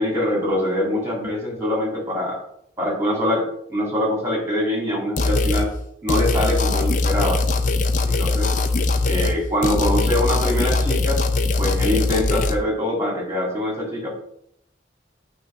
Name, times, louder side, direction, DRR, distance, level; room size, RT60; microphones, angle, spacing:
voice 1, 0.0-2.4 2.8-5.7 6.0-7.4 8.0-8.5 9.0-11.2 11.6-14.1, left 1 dB, 15° right, -1 dB, 1.9 m, -24 dB
sound 1, 5.2-5.7 6.1-9.4 9.6-12.6, left 3 dB, 45° left, 0.5 m, -21 dB
8.0 x 2.8 x 5.3 m, 0.73 s
head